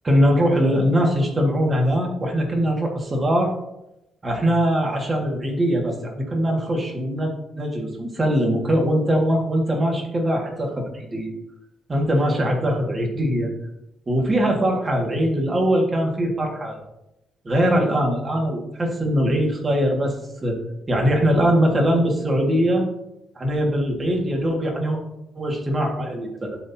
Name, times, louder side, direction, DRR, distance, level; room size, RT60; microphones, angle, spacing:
voice 1, 0.0-3.5 4.2-11.3 11.9-13.5 14.1-16.8 17.5-20.2 20.4-20.6 20.9-22.8 23.4-25.0 25.4-26.6, equal, 30° right, 1 dB, 1.8 m, -21 dB
12.5 x 4.3 x 2.8 m, 0.88 s
cardioid pair, 90°, 0 cm